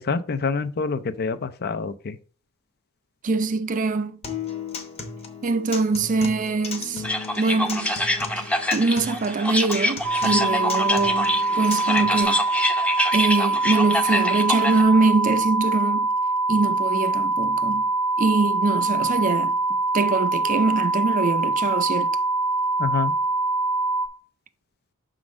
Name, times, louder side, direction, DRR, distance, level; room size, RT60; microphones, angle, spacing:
voice 1, 0.0-2.2 22.8-23.1, left 4 dB, 45° left, 0.5 m, -26 dB
voice 2, 3.2-4.2 5.4-7.1 7.4-7.9 8.4-8.5 8.7-12.4 13.1-16.1 16.5-17.9 18.2-19.5 19.9-22.1, right 3 dB, 35° right, 0.5 m, -23 dB
Acoustic guitar, 4.2-12.2, left 4 dB, 30° left, 1.0 m, -36 dB
sound 1, 7.0-14.8, left 1 dB, 5° left, 0.7 m, -26 dB
sound 2, 10.0-24.1, right 2 dB, 75° right, 0.9 m, -24 dB
6.1 x 3.8 x 6.1 m
head